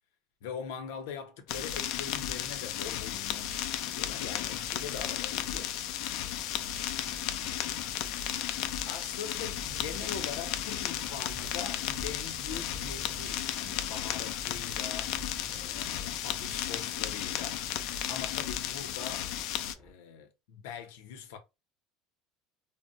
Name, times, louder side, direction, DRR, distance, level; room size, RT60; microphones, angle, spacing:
voice 1, 0.4-5.7 6.6-7.0 8.9-15.2 15.5-17.6 18.1-19.3 19.8-21.4, left 7 dB, 85° left, 0.7 m, -42 dB
sound 1, 1.5-19.7, left 11 dB, 60° left, 0.3 m, -34 dB
sound 2, 2.3-19.9, right 1 dB, 10° right, 0.9 m, -51 dB
2.2 x 2.0 x 3.8 m
cardioid pair, 155°, 0 cm